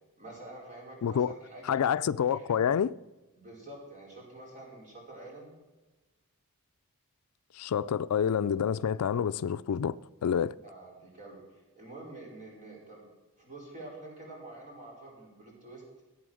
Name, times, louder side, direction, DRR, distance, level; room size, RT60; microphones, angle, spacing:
voice 1, 0.2-1.8 2.3-2.6 3.4-5.6 10.6-11.4 11.8-13.1 13.4-15.8, right 2 dB, 35° right, 4.6 m, -47 dB
voice 2, 1.0-1.3 1.6-2.9 7.5-10.5, left 8 dB, 75° left, 0.4 m, -28 dB
14.5 x 8.5 x 6.3 m
head